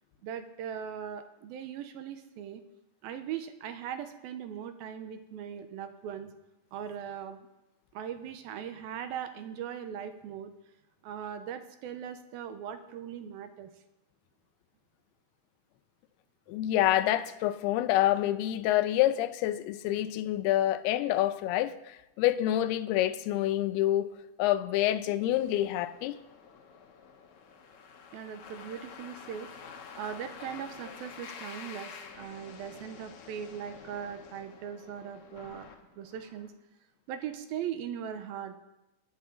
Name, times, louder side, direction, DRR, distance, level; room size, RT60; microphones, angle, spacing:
voice 1, 0.2-2.6 3.0-6.3 6.7-7.4 7.9-10.5 11.0-13.7 28.1-29.5 30.0-35.7 36.0-36.5 37.1-38.6, right 9 dB, 80° right, 2.5 m, -39 dB
voice 2, 16.5-24.1 24.4-26.2, left 13 dB, 85° left, 2.7 m, -27 dB
sound 1, 25.3-36.5, left 6 dB, 65° left, 1.9 m, -49 dB
18.5 x 10.5 x 3.8 m
omnidirectional pair, 4.5 m